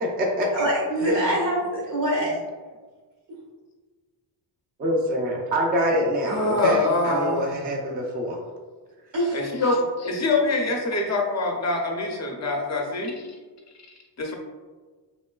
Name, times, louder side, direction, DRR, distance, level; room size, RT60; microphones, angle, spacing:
voice 1, 0.0-0.5 1.0-1.3 4.8-8.4, equal, 25° right, 0 dB, 0.3 m, -25 dB
voice 2, 0.5-2.4 9.1-9.4, equal, 80° right, -4 dB, 1.3 m, -24 dB
voice 3, 6.3-7.5 9.3-13.4 13.7-14.3, left 2 dB, 40° left, 1 dB, 0.5 m, -25 dB
3.0 x 3.0 x 2.2 m, 1.4 s
wide cardioid pair, 145°, 45 cm